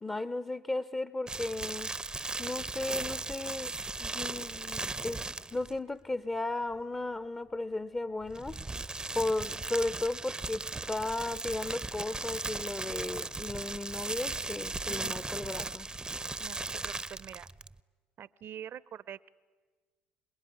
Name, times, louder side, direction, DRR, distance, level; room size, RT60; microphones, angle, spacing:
voice 1, 0.0-1.9 2.4-3.7 4.0-5.2 5.5-8.6 9.1-15.9, left 2 dB, 20° left, 0.7 m, -35 dB
sound 1, 1.3-5.8 8.2-17.8, right 3 dB, 15° right, 0.7 m, -37 dB
voice 2, 14.9-15.2 16.4-17.5 18.2-19.3, right 9 dB, 50° right, 0.7 m, -45 dB
26.5 x 20.5 x 9.7 m
hypercardioid pair, 70°, 5 cm